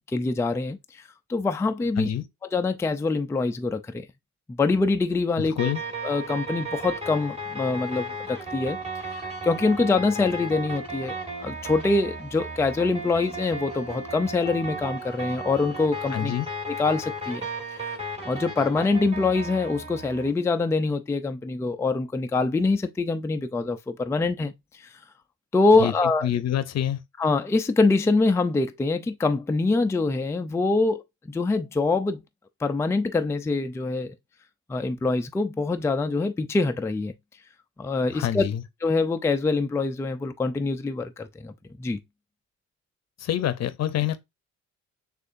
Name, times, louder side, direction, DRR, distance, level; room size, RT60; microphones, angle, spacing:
voice 1, 0.1-1.0 1.3-2.1 2.5-4.1 4.5-5.5 6.0-11.1 11.4-16.3 16.7-17.4 17.7-17.9 18.2-24.9 25.5-26.3 27.2-32.2 32.6-34.1 34.7-37.1 37.8-38.4 38.8-42.0, left 3 dB, 10° left, 0.4 m, -24 dB
voice 2, 5.4-5.8 16.1-16.5 25.8-25.9 26.2-27.0 38.1-38.6 43.2-44.2, left 11 dB, 60° left, 0.7 m, -26 dB
sound 1, 5.6-20.3, right 1 dB, 20° right, 2.0 m, -35 dB
6.5 x 2.5 x 2.6 m
cardioid pair, 90°, 30 cm